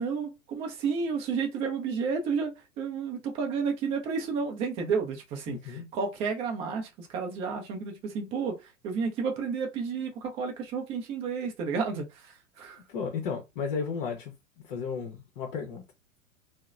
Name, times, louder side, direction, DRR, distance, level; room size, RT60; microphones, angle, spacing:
voice 1, 0.0-8.6 8.8-12.1 12.6-12.8, right 5 dB, 15° right, 0.4 m, -31 dB
voice 2, 5.5-5.9 12.9-14.3 14.6-15.8, left 6 dB, 45° left, 0.7 m, -34 dB
2.8 x 2.0 x 2.4 m
figure-of-eight pair, 105°, 38 cm